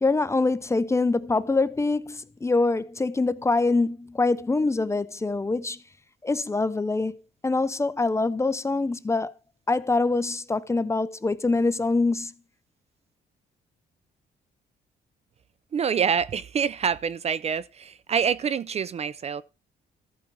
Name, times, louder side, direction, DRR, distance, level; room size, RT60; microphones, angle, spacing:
voice 1, 0.0-5.8 6.2-9.3 9.7-12.3, left 3 dB, 15° left, 0.5 m, -24 dB
voice 2, 15.7-19.4, right 7 dB, 40° right, 0.4 m, -26 dB
14.0 x 5.2 x 4.6 m
cardioid pair, 110°, 17 cm